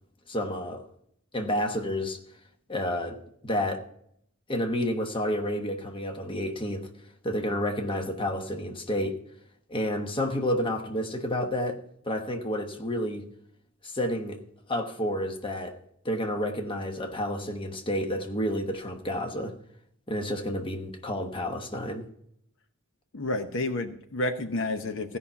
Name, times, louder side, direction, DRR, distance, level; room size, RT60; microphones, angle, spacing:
voice 1, 0.3-0.8 1.3-2.2 2.7-3.2 3.4-3.8 4.5-6.9 7.2-9.2 9.7-13.2 13.8-14.4 14.7-15.8 16.0-19.5 20.1-22.1, left 1 dB, 25° left, 1.1 m, -30 dB
voice 2, 23.1-25.2, left 2 dB, 60° left, 0.8 m, -30 dB
16.0 x 5.6 x 5.8 m
head